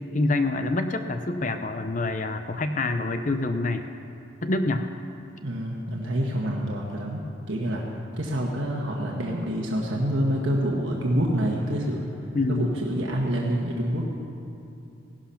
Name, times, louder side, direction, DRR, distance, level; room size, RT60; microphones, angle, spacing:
voice 1, 0.0-3.8 4.4-4.9 12.3-12.7, left 2 dB, 40° left, 8 dB, 0.6 m, -26 dB
voice 2, 5.4-7.8 8.2-12.0 12.5-14.1, equal, 70° right, -2 dB, 1.4 m, -27 dB
16.5 x 11.5 x 5.7 m, 2.7 s
head